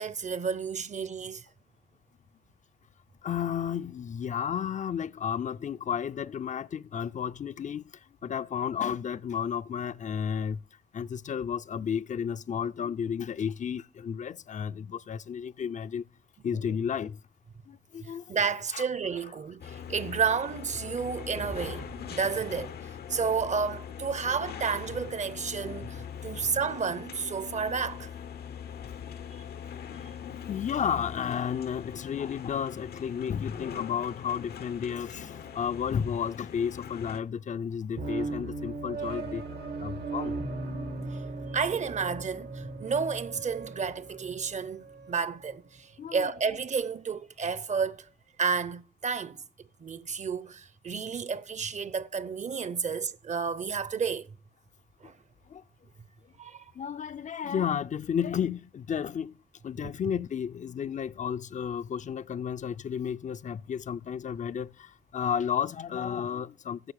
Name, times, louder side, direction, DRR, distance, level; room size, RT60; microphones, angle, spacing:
voice 1, 0.0-1.5 18.0-28.1 41.1-41.2 41.5-48.1 48.4-49.4 49.8-54.3 55.0-55.1 56.4-56.6 59.8-59.9, right 6 dB, 45° right, 0.7 m, -31 dB
voice 2, 3.2-10.6 10.9-16.0 16.4-17.2 17.7-18.4 18.7-18.8 25.7-25.8 30.5-39.5 39.8-40.4 46.0-46.3 55.0-55.1 55.5-55.6 56.8-59.4 59.6-66.9, left 8 dB, 50° left, 0.4 m, -32 dB
sound 1, 19.6-37.2, left 8 dB, 85° left, 0.8 m, -42 dB
sound 2, 38.0-45.3, right 3 dB, 85° right, 1.8 m, -37 dB
10.0 x 6.4 x 6.2 m
cardioid pair, 75°, 16 cm